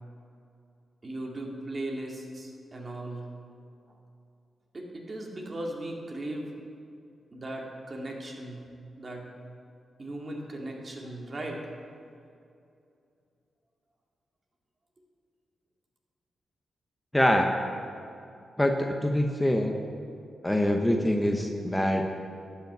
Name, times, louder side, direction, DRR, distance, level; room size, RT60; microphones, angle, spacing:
voice 1, 1.0-3.3 3.9-4.0 4.7-6.5 7.3-8.6 9.0-9.3 10.0-11.6, right 1 dB, 40° right, 0 dB, 2.2 m, -37 dB
voice 2, 17.1-17.5 18.6-19.7 20.4-22.2, left 1 dB, 10° left, 3 dB, 1.0 m, -24 dB
11.5 x 5.8 x 7.9 m, 2.6 s
cardioid pair, 55°, 0 cm